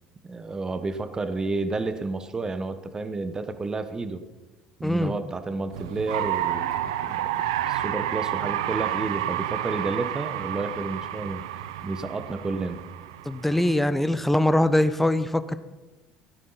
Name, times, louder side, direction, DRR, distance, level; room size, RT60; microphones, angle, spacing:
voice 1, 0.2-4.2 4.8-11.5 11.8-12.8, right 3 dB, 25° right, 10 dB, 1.1 m, -31 dB
voice 2, 4.8-5.1 13.3-15.6, left 1 dB, 5° left, 13 dB, 0.8 m, -22 dB
sound 1, 5.7-13.7, right 12 dB, 75° right, 0.5 m, -30 dB
16.5 x 9.8 x 4.1 m, 1.1 s
hypercardioid pair, 65°, 3 cm